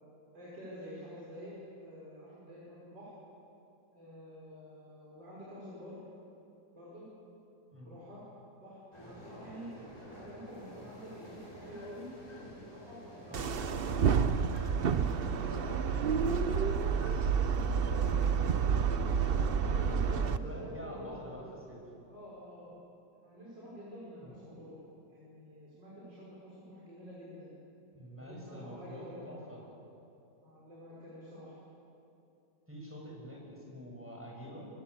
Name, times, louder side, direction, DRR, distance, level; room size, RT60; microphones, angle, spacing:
voice 1, 0.3-3.1 3.9-6.0 6.7-7.0 7.8-8.2 8.6-9.7 10.1-12.1 12.5-14.2 14.9-18.6 19.0-21.4 22.1-22.7 23.1-24.8 25.1-27.5 28.2-29.6 30.4-31.6, equal, 85° right, -7 dB, 6.2 m, -48 dB
sound 1, 8.9-19.5, equal, 15° left, 6.1 m, -50 dB
sound 2, 13.3-20.4, right 6 dB, 50° right, 0.7 m, -29 dB
voice 2, 19.8-21.8 24.1-24.3 27.9-29.6 32.7-34.7, equal, 5° right, -3 dB, 7.2 m, -46 dB
25.0 x 22.5 x 8.4 m, 2.8 s
omnidirectional pair, 1.9 m